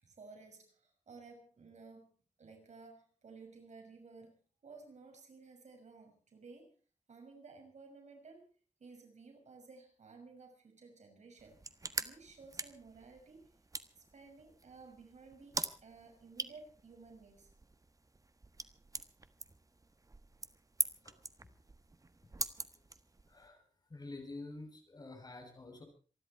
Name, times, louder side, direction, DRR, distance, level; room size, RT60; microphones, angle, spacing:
voice 1, 0.0-2.1 2.4-6.7 7.1-8.5 8.8-11.6 12.0-13.5 14.0-17.5, right 4 dB, 75° right, 4 dB, 6.3 m, -55 dB
sound 1, 11.4-23.5, right 3 dB, 30° right, 1.4 m, -44 dB
voice 2, 23.3-23.6 23.9-25.8, left 2 dB, 35° left, 3 dB, 7.3 m, -48 dB
27.5 x 11.5 x 4.5 m, 0.38 s
wide cardioid pair, 105°, 12 cm